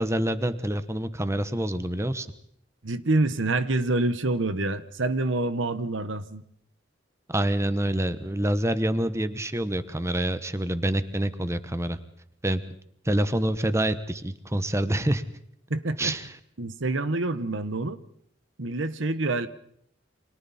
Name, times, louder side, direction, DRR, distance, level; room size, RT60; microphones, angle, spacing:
voice 1, 0.0-2.3 7.3-12.0 12.4-12.6 13.0-15.2 16.0-16.3, right 1 dB, 15° right, 12 dB, 1.1 m, -26 dB
voice 2, 2.8-6.4 15.7-16.1 16.6-18.0 18.6-19.5, right 2 dB, 85° right, 13 dB, 1.2 m, -27 dB
29.0 x 25.5 x 4.3 m, 0.69 s
head